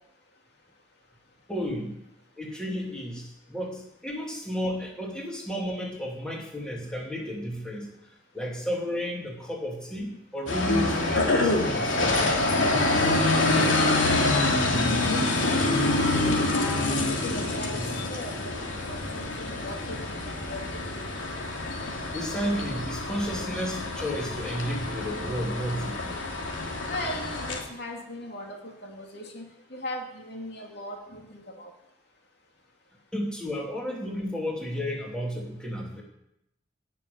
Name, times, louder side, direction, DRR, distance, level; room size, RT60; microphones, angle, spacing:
voice 1, 1.5-2.0 2.4-7.9 8.3-12.4 22.1-26.2 33.1-36.0, equal, 5° left, -2 dB, 2.8 m, -32 dB
sound 1, 10.5-27.6, left 2 dB, 85° left, 3.0 m, -26 dB
voice 2, 12.9-16.0 16.5-21.0 26.9-31.7, left 1 dB, 55° left, 1 dB, 2.6 m, -39 dB
17.0 x 7.0 x 9.5 m, 0.82 s
head